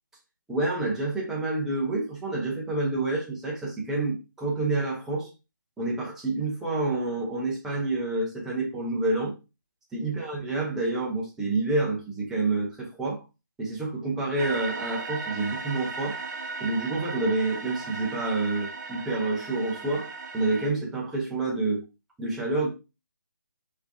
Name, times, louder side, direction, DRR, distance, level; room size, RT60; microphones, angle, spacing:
voice 1, 0.5-5.3 5.8-9.3 9.9-13.2 13.6-16.2 16.6-20.1 20.3-21.8 22.2-22.7, right 2 dB, 5° right, 0.6 m, -28 dB
sound 1, 14.4-20.7, right 4 dB, 55° right, 0.9 m, -36 dB
3.5 x 3.3 x 2.5 m
hypercardioid pair, 160°, 11 cm